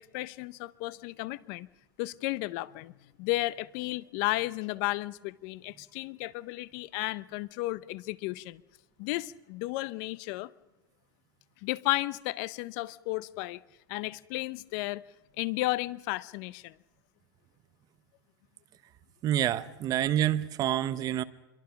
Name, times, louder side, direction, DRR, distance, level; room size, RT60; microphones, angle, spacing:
voice 1, 0.0-1.7 2.0-8.6 9.0-10.5 11.6-13.6 13.9-15.0 15.4-16.7, left 19 dB, 50° left, 0.7 m, -33 dB
voice 2, 19.2-21.2, right 11 dB, 30° right, 0.9 m, -27 dB
27.0 x 23.0 x 5.8 m
supercardioid pair, 145°, 12 cm